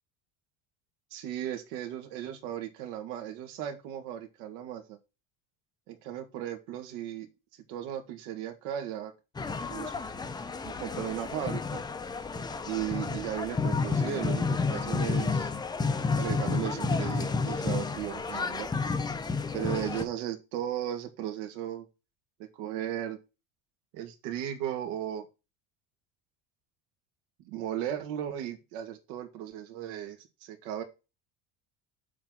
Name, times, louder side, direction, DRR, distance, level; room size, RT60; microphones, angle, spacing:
voice 1, 1.1-5.0 5.9-7.3 7.7-9.1 9.7-9.9 10.6-11.8 12.6-15.5 16.2-18.7 19.5-21.9 22.6-23.2 23.9-25.3 27.5-30.8, right 11 dB, 80° right, 5 dB, 2.1 m, -36 dB
sound 1, 9.4-20.0, left 4 dB, 10° left, 0.6 m, -31 dB
7.4 x 4.0 x 6.2 m, 0.27 s
cardioid pair, 150°, 36 cm